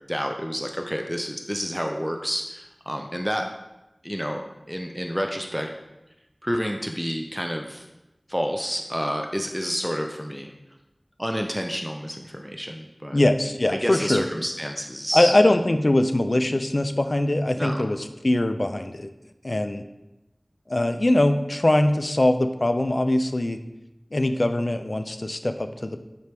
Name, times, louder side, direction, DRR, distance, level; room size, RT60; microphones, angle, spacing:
voice 1, 0.1-3.5 4.0-4.4 4.7-5.7 6.4-7.8 8.3-10.5 11.2-13.2 13.7-15.3 17.6-17.8, equal, ahead, 3 dB, 0.6 m, -29 dB
voice 2, 13.1-14.2 15.1-19.1 19.4-19.8 20.7-23.6 24.1-26.0, left 1 dB, 60° left, 8 dB, 0.5 m, -22 dB
9.3 x 4.6 x 3.5 m, 0.97 s
wide cardioid pair, 40°, 0 cm